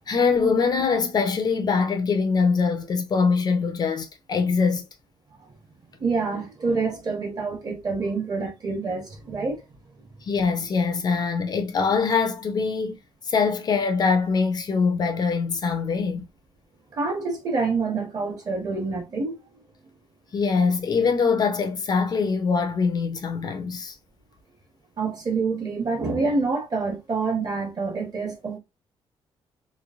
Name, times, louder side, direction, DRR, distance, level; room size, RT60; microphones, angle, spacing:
voice 1, 0.1-4.9 10.2-13.0 13.3-16.3 20.3-24.0, left 5 dB, 40° left, 0.5 m, -23 dB
voice 2, 6.0-9.6 16.9-19.4 25.0-28.6, right 4 dB, 35° right, 1.2 m, -27 dB
3.1 x 2.7 x 2.4 m
cardioid pair, 150°, 11 cm